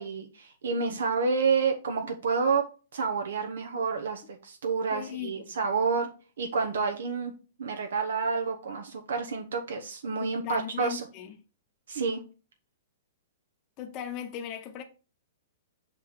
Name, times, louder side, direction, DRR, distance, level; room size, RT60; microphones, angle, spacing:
voice 1, 0.0-2.6 2.9-6.1 6.4-7.3 7.6-11.0 11.9-12.2, right 5 dB, 85° right, 1.0 m, -29 dB
voice 2, 4.9-5.5 10.2-11.3 13.8-14.8, left 10 dB, 25° left, 0.8 m, -38 dB
6.6 x 3.8 x 4.7 m
hypercardioid pair, 175°, 0 cm